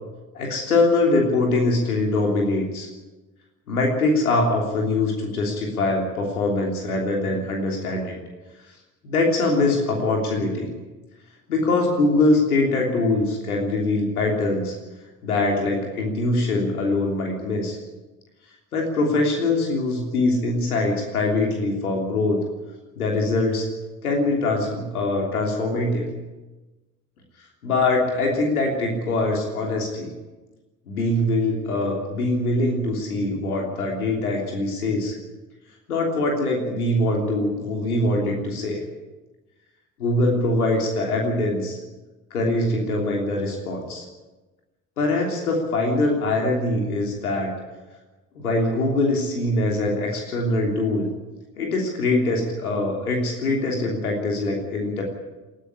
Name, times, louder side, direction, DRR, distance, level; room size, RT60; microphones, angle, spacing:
voice 1, 0.3-2.9 3.7-8.2 9.0-10.7 11.5-14.8 15.2-17.8 18.7-22.4 23.0-23.7 24.0-26.1 27.6-30.1 30.9-35.1 35.9-38.8 40.0-41.8 42.3-44.0 45.0-47.5 48.3-51.1 51.6-55.0, left 2 dB, 85° left, 1 dB, 3.2 m, -23 dB
20.5 x 13.0 x 9.9 m, 1.2 s
hypercardioid pair, 55°, 43 cm